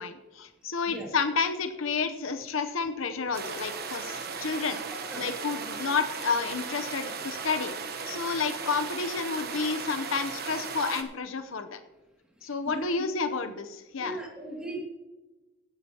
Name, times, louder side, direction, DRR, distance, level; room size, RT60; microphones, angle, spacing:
voice 1, 0.0-4.8 5.2-7.7 8.1-11.8 12.4-14.2, left 4 dB, 70° left, 9 dB, 0.8 m, -30 dB
sound 1, 3.3-11.0, right 5 dB, 45° right, 1.1 m, -36 dB
voice 2, 12.4-12.9 14.0-14.8, right 1 dB, 5° right, -2 dB, 2.4 m, -38 dB
16.5 x 10.0 x 2.9 m, 1.1 s
head